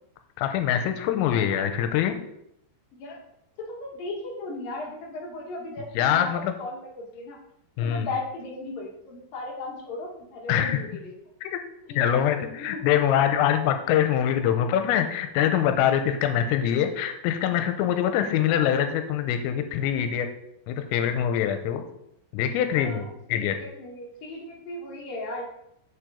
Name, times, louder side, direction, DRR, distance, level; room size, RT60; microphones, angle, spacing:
voice 1, 0.4-2.2 6.0-6.5 7.8-8.1 10.5-10.8 11.4-11.6 12.0-20.3 20.7-21.8 22.3-23.6, left 9 dB, 85° left, 7 dB, 3.3 m, -24 dB
voice 2, 2.9-3.2 3.6-7.4 7.8-11.1 11.9-12.3 12.6-12.8 18.4-18.6 22.7-25.4, left 2 dB, 60° left, -1 dB, 2.6 m, -37 dB
7.7 x 7.1 x 5.0 m, 0.78 s
omnidirectional pair, 5.9 m